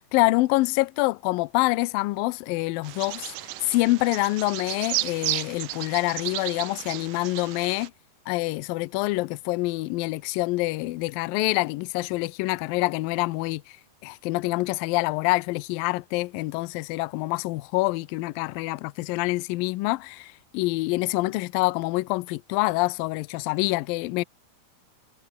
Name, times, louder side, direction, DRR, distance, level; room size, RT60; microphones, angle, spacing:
voice 1, 0.1-3.3 3.6-7.9 8.3-13.6 14.0-24.2, left 21 dB, 85° left, 2.0 m, -26 dB
Bird vocalization bird call bird song, 2.8-7.9, right 16 dB, 80° right, 2.0 m, -33 dB
omnidirectional pair, 4.9 m